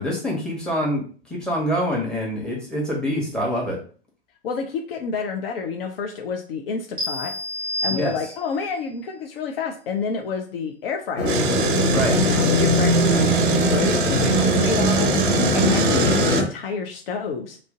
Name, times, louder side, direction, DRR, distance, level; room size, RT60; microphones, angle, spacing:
voice 1, 0.0-3.8 7.9-8.1 11.9-12.1, equal, 5° left, -3 dB, 1.0 m, -25 dB
voice 2, 4.4-7.3 7.8-11.6 12.1-15.2 15.5-17.6, left 5 dB, 55° left, 4 dB, 0.5 m, -29 dB
sound 1, 7.0-8.7, left 1 dB, 15° right, 1.0 m, -29 dB
sound 2, 11.2-16.4, equal, 35° left, 0.9 m, -20 dB
Engine, 11.3-16.4, right 7 dB, 50° right, 0.5 m, -27 dB
2.5 x 2.0 x 3.5 m, 0.42 s
figure-of-eight pair, 105°, 34 cm